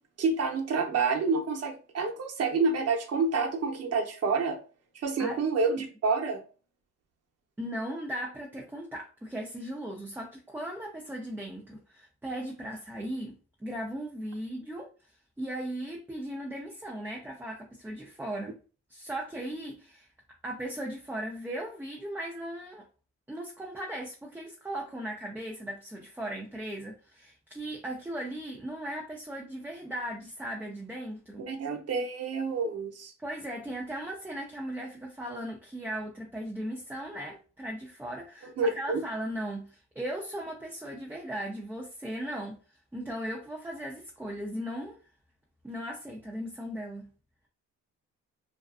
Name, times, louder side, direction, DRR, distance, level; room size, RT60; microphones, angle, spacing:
voice 1, 0.2-4.6 4.9-6.4 31.4-33.1 38.6-39.0, right 4 dB, 55° right, 1 dB, 0.8 m, -28 dB
voice 2, 7.6-13.4 13.6-14.9 15.4-18.6 18.9-20.1 20.4-22.8 23.3-31.5 33.2-42.6 42.9-45.0 45.6-47.1, right 1 dB, 5° right, -1 dB, 0.5 m, -37 dB
2.5 x 2.3 x 2.3 m, 0.36 s
cardioid pair, 90°, 30 cm